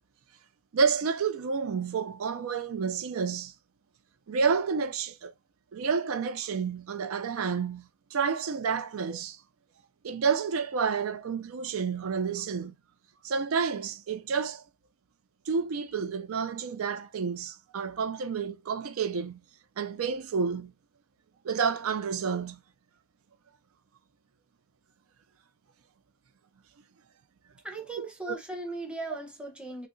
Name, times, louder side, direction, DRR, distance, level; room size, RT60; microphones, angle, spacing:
voice 1, 0.7-3.5 4.3-5.3 5.7-9.4 10.0-12.7 13.2-14.6 15.5-19.4 19.8-20.7 21.4-22.6 28.3-28.4, right 5 dB, 75° right, 0.4 m, -30 dB
voice 2, 27.6-29.9, right 2 dB, 5° right, 0.8 m, -38 dB
6.2 x 2.1 x 2.6 m
head